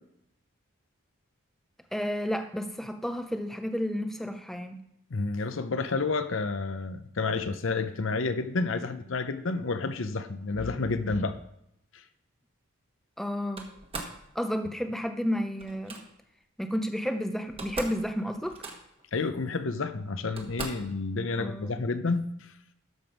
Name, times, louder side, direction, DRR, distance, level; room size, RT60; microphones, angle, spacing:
voice 1, 1.9-4.8 13.2-13.7 14.3-16.0 16.6-18.6 21.4-21.7, equal, ahead, 6 dB, 0.5 m, -31 dB
voice 2, 5.1-11.4 11.9-12.0 19.1-22.3, left 3 dB, 60° left, 11 dB, 0.7 m, -30 dB
Slam, 13.6-14.2 15.6-16.0 17.1-17.2 17.4-18.0 18.3-19.0 19.8-19.9 20.4-20.9, right 3 dB, 25° right, 1.3 m, -39 dB
13.0 x 5.2 x 5.3 m, 0.78 s
head